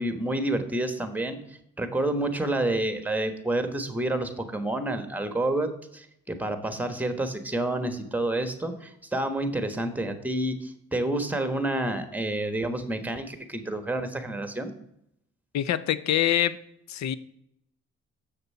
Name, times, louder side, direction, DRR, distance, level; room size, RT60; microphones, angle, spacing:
voice 1, 0.0-1.4 1.8-14.7, right 1 dB, 5° right, 1.2 m, -29 dB
voice 2, 15.5-16.6 16.9-17.2, left 11 dB, 65° left, 0.6 m, -25 dB
7.3 x 6.6 x 5.5 m
cardioid pair, 90°, 30 cm